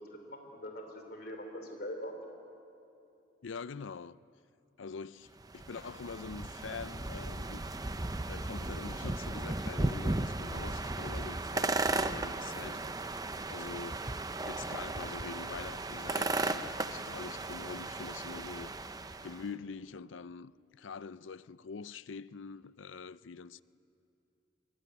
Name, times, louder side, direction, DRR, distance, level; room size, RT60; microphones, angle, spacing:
voice 1, 0.0-2.1, equal, 50° left, 3.0 m, -43 dB
voice 2, 3.4-4.2 4.8-7.6 8.3-12.9 13.5-14.2 14.4-18.7 19.2-23.6, left 5 dB, 75° left, 0.5 m, -44 dB
sound 1, 5.4-19.4, right 2 dB, 20° right, 0.6 m, -36 dB
25.5 x 23.5 x 9.8 m
head